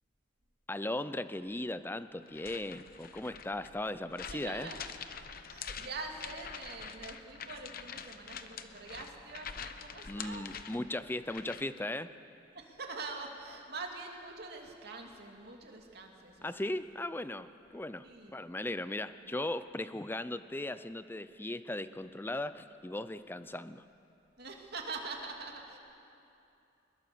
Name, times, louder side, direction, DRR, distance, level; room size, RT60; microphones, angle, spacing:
voice 1, 0.7-4.7 10.0-12.1 16.4-23.8, left 1 dB, 10° left, 13 dB, 0.5 m, -38 dB
sound 1, 2.3-11.8, left 7 dB, 50° left, 0.8 m, -46 dB
voice 2, 4.3-4.8 5.3-10.5 12.5-16.5 18.0-18.4 24.4-25.8, right 3 dB, 60° right, 1 dB, 2.6 m, -44 dB
Wind instrument woodwind instrument, 5.4-10.0, right 2 dB, 75° left, 3.9 m, -66 dB
21.5 x 20.5 x 7.0 m, 2.7 s
head